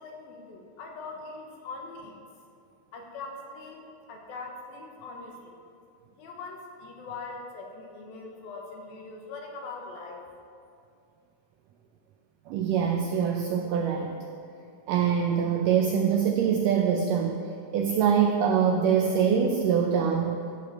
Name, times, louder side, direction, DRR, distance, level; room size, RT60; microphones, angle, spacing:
voice 1, 0.0-2.2 2.9-3.8 4.1-5.6 6.2-10.2, left 3 dB, 70° left, 1 dB, 3.0 m, -41 dB
voice 2, 12.5-14.2 14.9-17.4 17.7-20.4, right 7 dB, 80° right, 3 dB, 1.9 m, -24 dB
14.0 x 5.5 x 7.4 m, 2.5 s
omnidirectional pair, 4.5 m